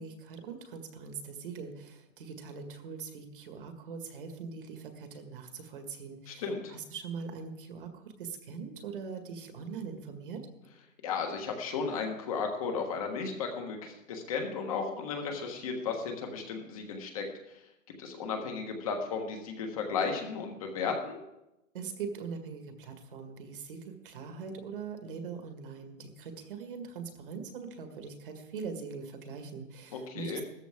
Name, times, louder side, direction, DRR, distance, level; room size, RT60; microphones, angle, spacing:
voice 1, 0.0-6.4 6.7-10.5 21.7-30.4, right 5 dB, 40° right, 6 dB, 1.8 m, -42 dB
voice 2, 6.3-6.7 11.0-17.3 18.0-21.2 29.9-30.4, left 5 dB, 25° left, 3 dB, 1.5 m, -34 dB
16.0 x 13.5 x 3.6 m, 0.91 s
hypercardioid pair, 175°, 40 cm